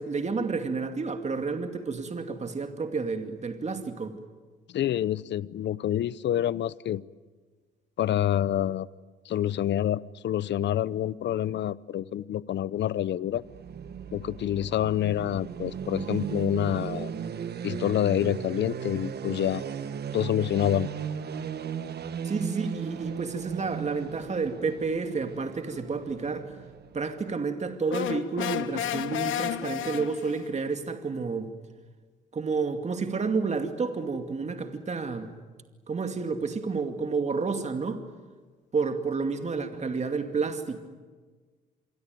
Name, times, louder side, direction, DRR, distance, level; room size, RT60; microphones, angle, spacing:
voice 1, 0.0-4.2 22.2-26.5 26.9-31.5 32.3-35.3 35.9-38.0 38.7-40.8, right 4 dB, 35° right, 6 dB, 2.4 m, -30 dB
voice 2, 4.7-7.0 8.0-8.9 9.3-13.4 14.1-17.1 17.6-19.6 20.1-20.9, left 11 dB, 65° left, 19 dB, 0.8 m, -27 dB
sound 1, 13.3-27.2, right 7 dB, 55° right, 1.4 m, -36 dB
sound 2, 27.9-30.5, left 11 dB, 80° left, 1.3 m, -32 dB
27.0 x 23.0 x 9.4 m, 1.4 s
cardioid pair, 90°, 20 cm